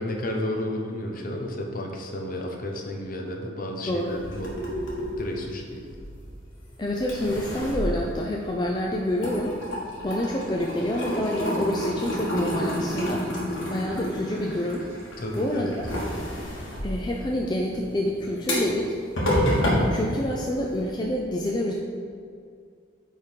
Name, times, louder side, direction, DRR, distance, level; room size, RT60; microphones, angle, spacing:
voice 1, 0.0-4.5 5.2-5.8 15.2-15.7, left 1 dB, 45° left, 1 dB, 0.9 m, -32 dB
voice 2, 3.9-4.2 6.8-9.6 10.0-13.3 13.7-14.9 15.3-15.9 16.8-18.9 19.7-21.7, left 1 dB, 20° left, -1 dB, 0.4 m, -27 dB
sound 1, 4.1-6.6 7.0-8.8 9.1-20.8, equal, 85° left, 1.7 m, -29 dB
8.4 x 3.7 x 4.5 m, 2.3 s
head